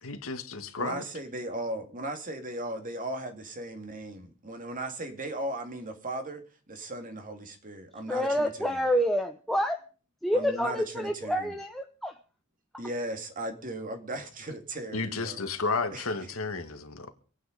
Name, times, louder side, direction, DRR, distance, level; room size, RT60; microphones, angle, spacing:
voice 1, 0.0-1.0 14.9-17.1, left 3 dB, 75° left, 2.0 m, -32 dB
voice 2, 0.8-8.8 10.3-11.5 12.8-15.4 15.9-16.0, right 1 dB, 40° right, 2.3 m, -37 dB
voice 3, 8.1-9.8 10.2-12.2, equal, ahead, 0.8 m, -28 dB
25.5 x 9.3 x 5.2 m
head